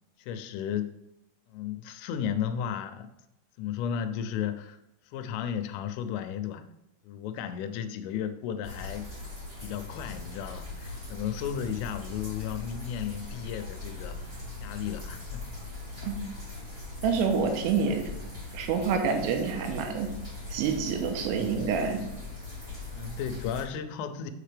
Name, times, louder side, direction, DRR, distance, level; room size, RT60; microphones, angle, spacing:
voice 1, 0.2-0.9 1.5-3.1 3.6-4.8 5.0-6.6 7.0-9.1 9.6-14.2 14.6-15.5 22.9-24.3, left 8 dB, 85° left, 9 dB, 3.1 m, -34 dB
sound 1, 8.6-23.6, left 3 dB, 30° right, 1.1 m, -40 dB
voice 2, 17.0-18.0 18.5-20.1 20.5-22.0, right 5 dB, 85° right, 4 dB, 3.5 m, -27 dB
7.4 x 6.5 x 3.3 m, 0.87 s
omnidirectional pair, 5.8 m